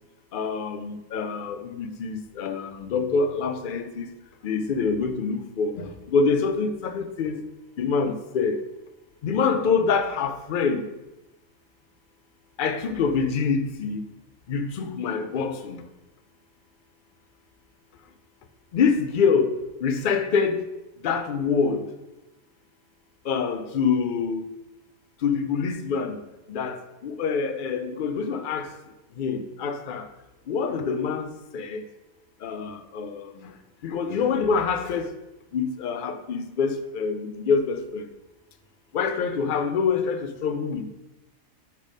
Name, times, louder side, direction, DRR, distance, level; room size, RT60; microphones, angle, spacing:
voice 1, 0.3-4.1 4.4-7.4 7.8-8.6 9.2-10.8 12.6-14.0 14.5-15.8 18.7-20.6 21.0-21.9 23.3-24.5 25.2-26.2 26.5-28.7 29.2-30.1 30.5-31.8 32.4-33.5 33.8-35.1 35.5-38.0 38.9-40.9, left 5 dB, 55° left, 0.6 m, -26 dB
6.7 x 3.6 x 5.0 m
omnidirectional pair, 1.3 m